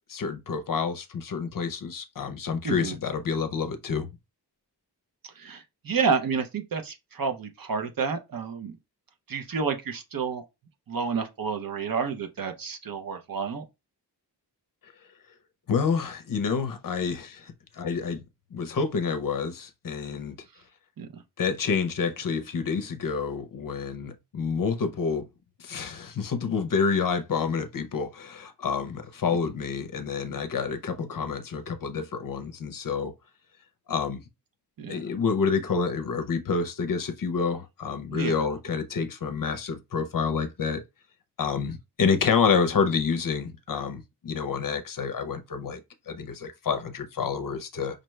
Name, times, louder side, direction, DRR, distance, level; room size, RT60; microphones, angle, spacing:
voice 1, 0.1-4.1 15.7-18.2 18.5-20.4 21.4-25.3 25.6-33.1 33.9-34.2 34.9-40.8 41.4-48.0, left 5 dB, 55° left, 0.6 m, -28 dB
voice 2, 2.6-3.0 5.2-8.7 9.3-10.4 10.9-13.7 21.0-21.2 34.8-35.0 38.1-38.5, right 5 dB, 55° right, 0.7 m, -30 dB
5.2 x 2.2 x 3.1 m
wide cardioid pair, 135°, 41 cm